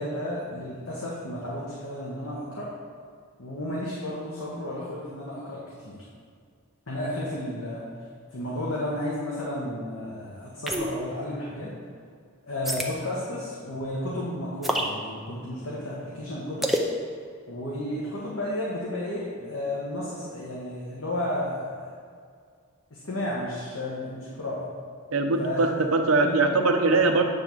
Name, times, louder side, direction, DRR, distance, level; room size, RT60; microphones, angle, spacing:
voice 1, 0.0-2.7 3.4-6.0 6.9-7.8 8.3-11.7 12.4-16.7 17.5-21.9 22.9-24.6 25.4-25.7 26.2-26.3 26.9-27.0, left 1 dB, 75° left, -5 dB, 1.2 m, -32 dB
sound 1, 10.7-11.1 12.6-12.9 14.6-14.9 16.6-16.9, right 1 dB, ahead, 0.5 m, -26 dB
voice 2, 25.1-27.2, right 3 dB, 75° right, 4 dB, 0.7 m, -22 dB
8.8 x 3.5 x 6.1 m, 2.1 s
head